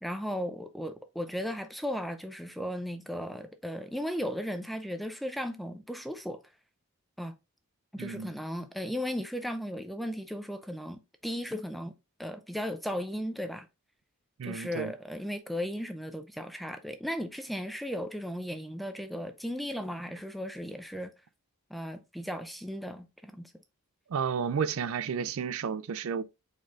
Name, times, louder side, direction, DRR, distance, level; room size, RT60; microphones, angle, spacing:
voice 1, 0.0-6.4 7.2-7.4 7.9-11.9 12.2-13.7 14.4-21.1 21.7-23.5, equal, ahead, 0.3 m, -36 dB
voice 2, 8.0-8.3 14.4-14.9 24.1-26.2, right 6 dB, 70° right, 0.4 m, -32 dB
4.6 x 4.4 x 2.4 m
head